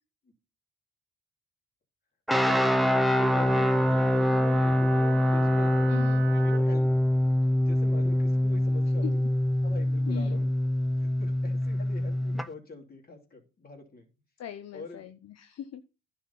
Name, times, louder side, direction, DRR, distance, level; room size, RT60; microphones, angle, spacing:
sound 1, 2.3-12.5, left 1 dB, ahead, 0.7 m, -24 dB
voice 1, 2.4-5.9 6.4-7.0 7.4-9.2 9.6-10.5 11.0-14.1 14.7-15.0, left 2 dB, 30° left, 1 dB, 2.9 m, -44 dB
Wind instrument woodwind instrument, 2.4-6.6, right 9 dB, 40° right, 1.0 m, -39 dB
voice 2, 5.9-6.3 9.0-9.1 10.1-10.4 14.4-15.8, left 10 dB, 60° left, 9 dB, 0.7 m, -40 dB
10.5 x 4.3 x 5.5 m, 0.31 s
cardioid pair, 90°, 30 cm